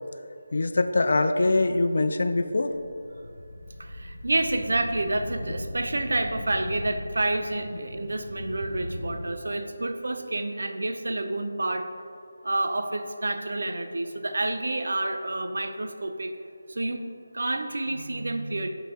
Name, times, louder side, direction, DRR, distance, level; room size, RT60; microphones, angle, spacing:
voice 1, 0.5-2.7, left 2 dB, 50° left, 8 dB, 0.4 m, -23 dB
sound 1, 2.5-9.3, left 1 dB, 70° left, 1.2 m, -38 dB
voice 2, 3.8-11.9 12.4-16.4 16.7-17.0 17.3-18.7, right 2 dB, 65° right, 7 dB, 0.5 m, -29 dB
6.8 x 3.9 x 4.7 m, 2.4 s
figure-of-eight pair, 175°, 0 cm